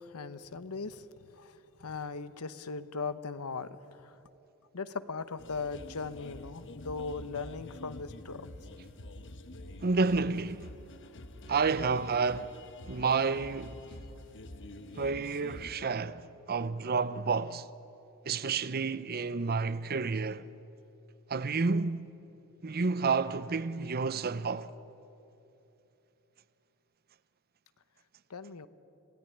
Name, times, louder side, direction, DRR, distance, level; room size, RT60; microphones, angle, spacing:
voice 1, 0.0-4.2 4.7-8.5 28.3-28.7, left 4 dB, 80° left, 1.0 m, -39 dB
sound 1, 5.4-15.7, left 1 dB, 60° left, 1.1 m, -47 dB
voice 2, 9.8-10.7 11.5-12.6 12.9-13.8 15.0-17.7 18.3-20.5 21.3-22.1 22.6-24.7, right 4 dB, 45° right, 0.7 m, -30 dB
28.0 x 17.0 x 9.9 m
head